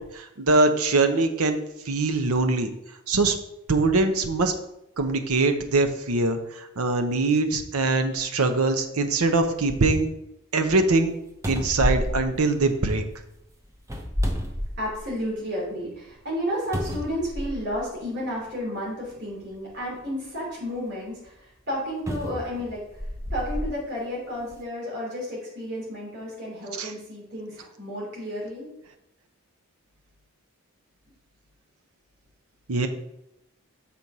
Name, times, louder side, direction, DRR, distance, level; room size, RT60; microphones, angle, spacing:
voice 1, 0.1-1.6 1.9-2.7 3.1-3.3 3.7-4.5 5.0-6.4 6.8-10.1 10.5-11.1 11.5-13.0 26.8-26.9 32.7-32.9, right 3 dB, 85° right, 7 dB, 0.8 m, -22 dB
sound 1, 11.0-11.1 11.4-13.1 13.8-15.2 15.7-15.8 16.7-17.8 18.8-18.9 22.1-23.7 24.4-24.5, equal, 15° right, 0.6 m, -30 dB
voice 2, 14.8-28.7, equal, 50° right, -5 dB, 2.9 m, -32 dB
6.3 x 4.3 x 5.4 m, 0.85 s
head